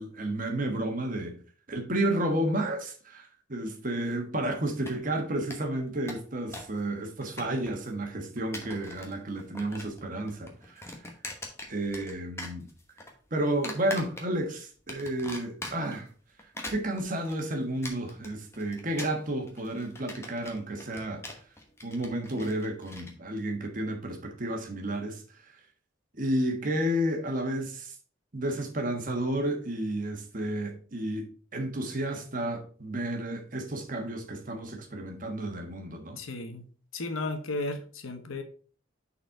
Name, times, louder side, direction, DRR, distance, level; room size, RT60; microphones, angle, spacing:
voice 1, 0.0-1.4 1.7-10.9 11.7-12.7 13.3-16.1 16.7-21.2 21.8-25.2 26.1-28.0 28.3-36.2, right 1 dB, 40° right, 1.3 m, -31 dB
sound 1, 4.7-5.2 5.5-5.6 5.9-6.8 7.0-7.9 8.4-9.1 9.4-10.0 10.3-12.1 12.4-13.1 13.6-14.5 14.9-16.0 16.4-23.1, left 1 dB, 15° left, 1.1 m, -41 dB
voice 2, 36.2-36.6 36.9-38.4, left 2 dB, 85° left, 1.1 m, -34 dB
6.7 x 4.3 x 4.5 m
head